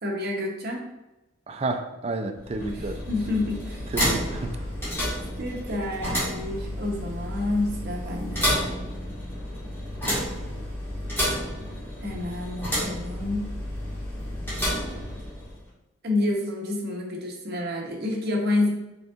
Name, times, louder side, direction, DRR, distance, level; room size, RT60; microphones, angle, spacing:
voice 1, 0.0-0.9 2.6-3.8 5.4-8.5 12.0-13.5 16.0-18.7, left 2 dB, 50° right, -1 dB, 0.9 m, -29 dB
voice 2, 1.5-3.0 3.9-4.6 10.0-10.1, right 2 dB, 30° right, 6 dB, 0.3 m, -30 dB
sound 1, 2.3-15.6, equal, 10° left, 1.5 m, -30 dB
5.1 x 3.6 x 2.4 m, 0.94 s
head